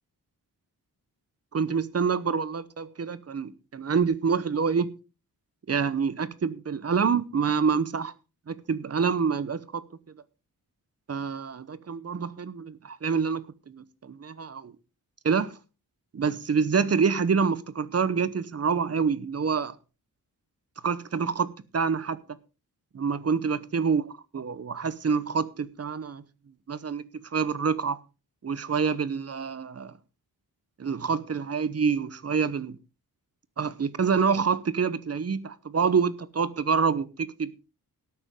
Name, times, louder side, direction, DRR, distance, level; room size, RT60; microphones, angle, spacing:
voice 1, 1.5-4.9 5.7-8.1 8.5-9.8 11.1-14.7 15.2-15.5 16.1-19.7 20.8-22.2 22.9-24.0 24.3-26.2 26.7-27.1 27.3-28.0 28.4-29.9 30.8-32.8 33.6-37.5, right 5 dB, 40° right, 0.9 m, -27 dB
18.0 x 8.9 x 3.7 m
wide cardioid pair, 150°, 37 cm